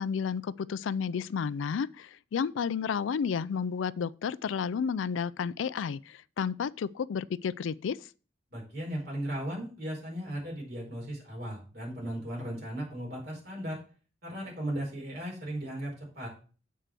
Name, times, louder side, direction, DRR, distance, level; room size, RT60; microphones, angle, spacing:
voice 1, 0.0-8.1, left 6 dB, 85° left, 0.4 m, -31 dB
voice 2, 8.5-13.8 14.2-16.3, right 1 dB, 55° right, 4.7 m, -36 dB
7.5 x 4.6 x 6.6 m
head